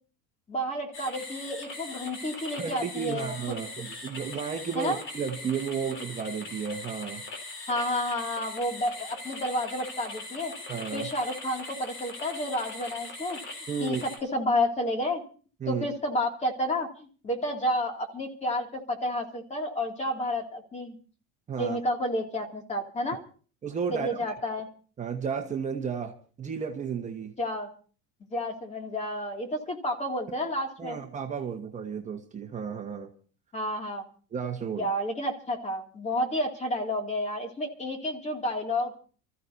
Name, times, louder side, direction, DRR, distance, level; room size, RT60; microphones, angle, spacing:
voice 1, 0.5-3.3 4.8-5.0 7.7-14.0 14.3-15.2 15.7-21.0 21.6-23.2 23.9-24.7 27.4-27.7 28.3-31.0 33.5-34.0 34.7-39.0, left 1 dB, 20° left, 3 dB, 2.5 m, -30 dB
sound 1, 0.9-14.2, left 2 dB, 40° left, 3.4 m, -41 dB
voice 2, 2.6-7.2 10.7-11.1 13.7-14.0 15.6-15.8 21.5-21.8 23.6-24.3 25.0-27.3 30.8-33.1 34.3-34.9, right 6 dB, 25° right, 2 dB, 1.4 m, -33 dB
29.0 x 14.5 x 2.7 m, 0.40 s
cardioid pair, 145°, 31 cm